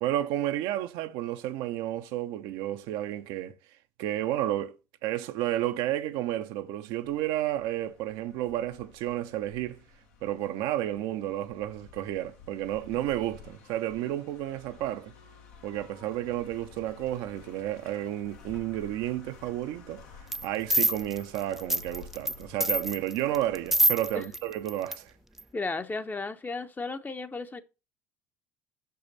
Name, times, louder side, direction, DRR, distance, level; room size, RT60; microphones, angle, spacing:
voice 1, 0.0-3.6 4.0-4.7 5.0-9.8 10.2-15.1 15.6-20.0 20.4-25.1, right 13 dB, 65° right, 0.6 m, -31 dB
sound 1, 7.0-25.2, left 5 dB, 75° left, 1.1 m, -52 dB
sound 2, 20.3-20.5 20.7-22.4 22.6-24.4 24.7-25.0 25.4-25.5, right 1 dB, 5° right, 0.4 m, -25 dB
voice 2, 25.5-27.6, left 3 dB, 20° left, 0.7 m, -34 dB
5.8 x 5.6 x 3.9 m
hypercardioid pair, 60°, 9 cm